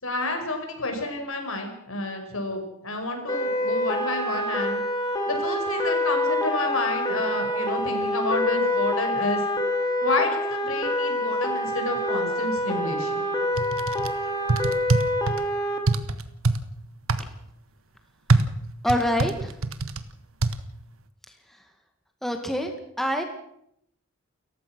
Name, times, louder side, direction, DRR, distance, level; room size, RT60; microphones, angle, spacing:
voice 1, 0.0-4.8 5.3-9.4 10.0-13.2 14.1-14.3, left 2 dB, 75° left, 4 dB, 5.7 m, -29 dB
sound 1, 3.3-15.8, left 1 dB, 20° left, 3.2 m, -26 dB
sound 2, 13.6-14.1 14.5-15.4 15.9-16.6 17.1-17.2 18.3-20.0 20.4-20.5, right 3 dB, 75° right, 1.4 m, -23 dB
voice 2, 18.8-19.5 22.2-22.7 23.0-23.2, equal, ahead, 4 dB, 1.9 m, -25 dB
29.0 x 15.0 x 6.2 m, 0.75 s
head